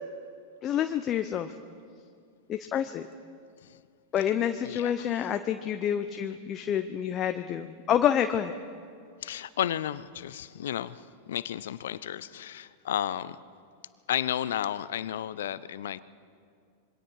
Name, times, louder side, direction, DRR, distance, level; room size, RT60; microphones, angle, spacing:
voice 1, 0.6-1.5 2.5-3.0 4.1-8.5, left 9 dB, 35° left, 8 dB, 0.9 m, -28 dB
voice 2, 4.6-5.3 9.2-13.4 14.1-16.0, left 11 dB, 70° left, 17 dB, 0.6 m, -33 dB
26.5 x 22.5 x 4.8 m, 2.2 s
figure-of-eight pair, 95°, 0 cm